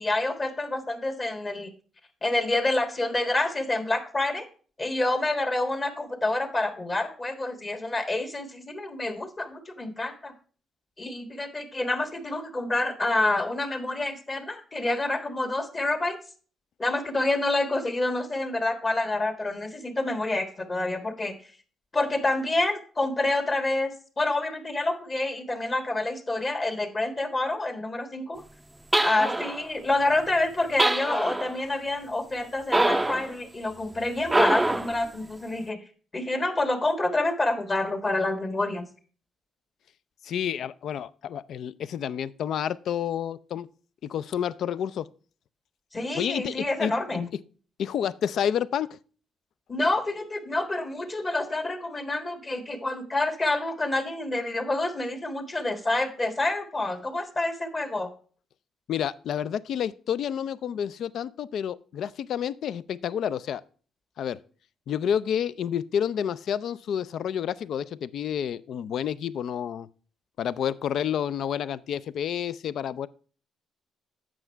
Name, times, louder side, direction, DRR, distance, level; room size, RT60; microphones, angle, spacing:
voice 1, 0.0-1.7 2.2-4.5 4.8-10.3 11.0-16.2 16.8-21.4 21.9-28.4 29.0-35.8 36.1-38.9 45.9-47.3 49.7-58.1, left 2 dB, 30° left, 1.5 m, -28 dB
sound 1, 28.9-29.7 30.8-31.6 32.7-33.3 34.3-35.0, right 2 dB, 10° right, 0.4 m, -24 dB
voice 2, 40.2-43.7 44.0-45.1 46.1-46.9 47.8-49.0 58.9-63.6 64.2-64.4 64.9-69.9 70.4-73.1, left 9 dB, 70° left, 0.3 m, -29 dB
7.9 x 6.2 x 4.4 m
cardioid pair, 90°, 0 cm